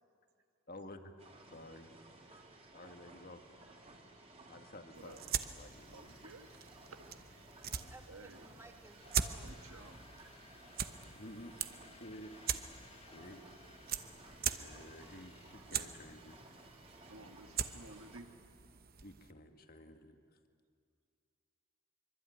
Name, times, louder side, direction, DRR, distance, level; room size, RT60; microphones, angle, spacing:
voice 1, 0.7-1.1 1.5-1.9 2.7-3.4 4.5-6.2 11.2-11.6 12.0-12.6 13.1-13.4 14.5-16.4 19.0-20.2, left 1 dB, 40° left, 6 dB, 1.9 m, -52 dB
sound 1, 1.2-18.2, right 2 dB, 30° right, 3.0 m, -57 dB
sound 2, 4.9-19.3, right 8 dB, 45° right, 1.0 m, -42 dB
voice 2, 5.9-6.5 7.0-7.5 8.1-8.5 9.4-10.0 17.1-18.3, right 2 dB, 70° right, 6 dB, 1.8 m, -54 dB
voice 3, 7.6-10.1, right 2 dB, 10° right, 4 dB, 1.9 m, -58 dB
sound 3, 9.0-15.5, left 5 dB, 25° left, 1.2 m, -62 dB
24.5 x 24.5 x 9.5 m, 2.3 s
head